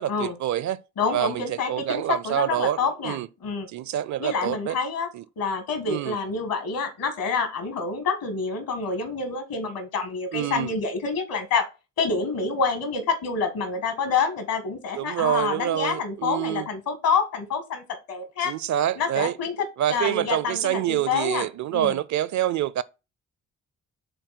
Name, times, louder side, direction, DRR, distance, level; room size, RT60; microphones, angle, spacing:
voice 1, 0.0-0.8 1.1-3.3 3.7-4.8 5.1-5.2 5.9-6.2 10.3-10.7 15.0-16.7 18.4-19.4 19.8-22.8, right 12 dB, 50° right, 0.5 m, -26 dB
voice 2, 1.0-3.7 4.2-5.1 5.4-11.6 12.0-18.5 19.0-19.5 19.9-22.0, left 5 dB, 65° left, 1.8 m, -27 dB
6.9 x 3.6 x 4.2 m
hypercardioid pair, 40°, 37 cm